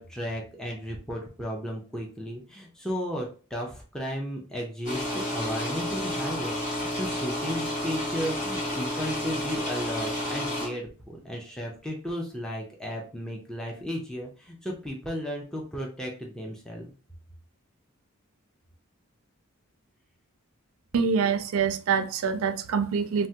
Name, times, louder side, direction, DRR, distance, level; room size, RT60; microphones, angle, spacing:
voice 1, 0.0-16.9, equal, 5° left, 0.4 m, -34 dB
sound 1, 4.8-10.7, left 1 dB, 35° left, 1.5 m, -31 dB
voice 2, 20.9-23.3, right 6 dB, 65° right, 0.3 m, -25 dB
3.3 x 2.1 x 2.7 m
head